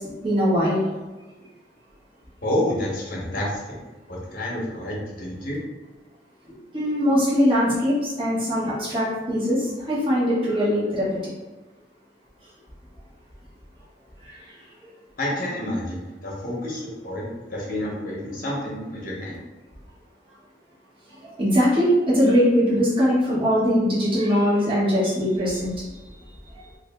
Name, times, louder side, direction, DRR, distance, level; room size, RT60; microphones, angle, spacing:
voice 1, 0.2-0.8 6.7-11.0 21.4-21.9 22.1-25.7, equal, 30° right, -9 dB, 1.1 m, -21 dB
voice 2, 2.4-3.8 4.1-5.6 15.2-19.4, left 1 dB, 45° left, -3 dB, 1.0 m, -29 dB
3.3 x 2.6 x 3.5 m, 1.1 s
head